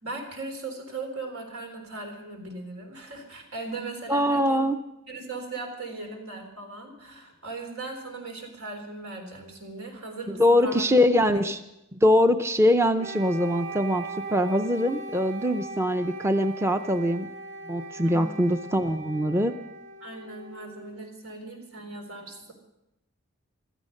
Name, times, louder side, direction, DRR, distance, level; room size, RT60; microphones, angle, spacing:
voice 1, 0.0-4.7 5.1-10.8 11.2-11.4 18.0-18.4 20.0-22.5, right 3 dB, 90° right, 3 dB, 3.9 m, -38 dB
voice 2, 4.1-4.8 10.3-11.6 11.9-17.3 17.7-19.5, left 1 dB, 10° right, 9 dB, 0.5 m, -23 dB
Wind instrument woodwind instrument, 13.0-21.0, right 3 dB, 65° right, 2.6 m, -40 dB
16.0 x 13.0 x 6.5 m, 0.90 s
head